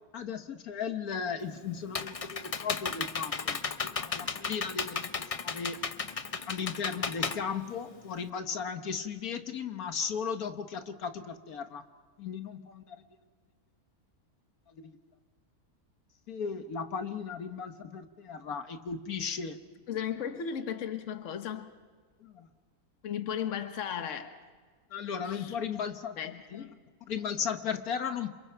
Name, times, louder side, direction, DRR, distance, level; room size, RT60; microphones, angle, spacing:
voice 1, 0.1-3.6 3.9-5.8 6.4-11.8 12.2-13.0 14.7-15.0 16.3-19.6 22.2-22.5 24.9-26.7 27.1-28.3, left 6 dB, 80° left, 1.6 m, -36 dB
Computer keyboard, 1.4-8.3, left 5 dB, 40° left, 0.5 m, -35 dB
voice 2, 19.9-21.8 23.0-24.4 25.2-25.6 26.2-26.8, left 8 dB, 60° left, 1.4 m, -36 dB
29.5 x 27.0 x 4.6 m
omnidirectional pair, 1.5 m